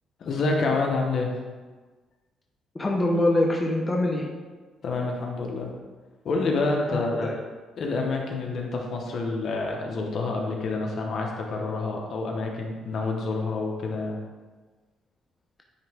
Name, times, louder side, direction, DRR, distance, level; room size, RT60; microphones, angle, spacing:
voice 1, 0.2-1.3 4.8-5.7 6.2-7.3 7.8-14.2, left 3 dB, 55° left, 0 dB, 1.1 m, -28 dB
voice 2, 2.7-4.3 6.9-7.3, left 1 dB, 20° left, -1 dB, 0.7 m, -24 dB
9.6 x 3.5 x 3.5 m, 1.3 s
cardioid pair, 115°, 0 cm